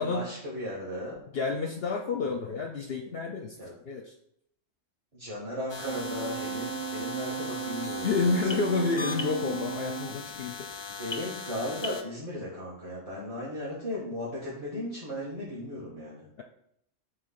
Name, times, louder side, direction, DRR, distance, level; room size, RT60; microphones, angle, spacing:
voice 1, 0.0-1.2 3.6-3.7 5.1-8.7 11.0-16.2, left 1 dB, 30° right, -7 dB, 1.6 m, -36 dB
voice 2, 1.3-3.6 3.9-4.1 8.0-10.9, left 4 dB, 60° left, 4 dB, 0.8 m, -29 dB
sound 1, 5.7-12.0, left 4 dB, 35° left, 0.4 m, -39 dB
Brass instrument, 5.8-10.2, right 8 dB, 60° right, 1.2 m, -36 dB
7.5 x 3.2 x 5.7 m, 0.74 s
omnidirectional pair, 1.3 m